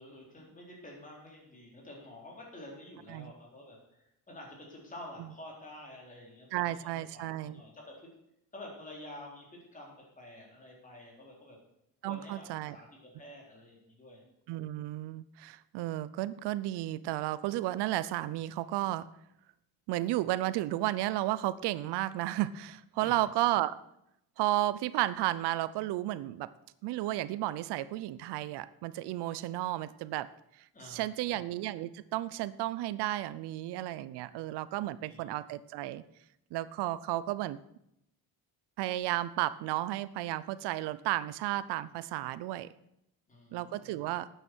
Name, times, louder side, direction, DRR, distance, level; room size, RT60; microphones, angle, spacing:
voice 1, 0.0-8.1 8.5-11.6 12.0-14.2 23.0-23.2 30.7-31.4 35.0-35.3 43.3-44.0, left 1 dB, 20° left, -1 dB, 4.0 m, -49 dB
voice 2, 6.5-7.6 12.0-12.8 14.5-19.1 19.9-23.8 24.4-26.5 26.8-30.3 30.8-36.0 36.5-37.6 38.8-42.7 43.5-44.3, right 15 dB, 85° right, 17 dB, 0.7 m, -33 dB
12.0 x 9.2 x 6.2 m, 0.79 s
cardioid pair, 160°, 39 cm